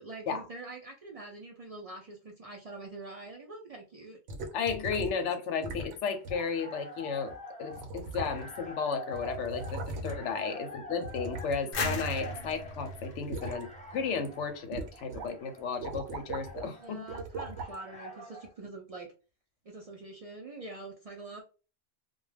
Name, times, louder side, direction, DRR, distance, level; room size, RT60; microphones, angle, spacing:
voice 1, 0.0-4.2 4.9-5.0 10.3-10.6 11.6-11.8 16.8-19.1 19.6-21.4, right 2 dB, 65° right, 0.3 m, -45 dB
sound 1, 4.3-5.2 5.6-6.0 6.2-6.4 7.3-7.4 7.7-8.7 8.9-10.4 11.0-12.5 12.9-13.6 14.1-14.3 14.7-15.3 15.6-16.7 17.1-17.8 18.4-18.5, right 2 dB, 80° right, 0.9 m, -39 dB
voice 2, 4.5-7.3 7.6-17.1, left 5 dB, 85° left, 0.9 m, -34 dB
sound 2, 6.1-18.5, left 1 dB, 10° left, 0.5 m, -47 dB
sound 3, 11.7-14.4, left 2 dB, 55° left, 0.8 m, -36 dB
2.2 x 2.1 x 3.2 m
omnidirectional pair, 1.2 m